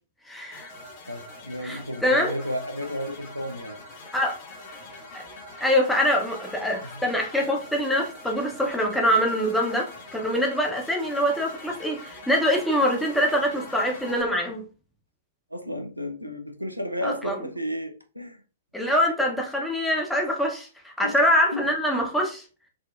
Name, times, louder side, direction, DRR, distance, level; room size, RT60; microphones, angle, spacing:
voice 1, 0.3-0.7 1.6-2.3 4.1-4.4 5.1-5.2 5.6-14.6 17.0-17.4 18.7-22.4, equal, 5° left, 0.7 m, -24 dB
sound 1, 0.5-14.2, left 2 dB, 35° left, 0.8 m, -43 dB
voice 2, 1.1-3.8 15.5-18.4 21.0-21.2 21.5-21.7, equal, 90° right, 0.4 m, -32 dB
3.6 x 2.1 x 2.4 m
figure-of-eight pair, 110°, 0 cm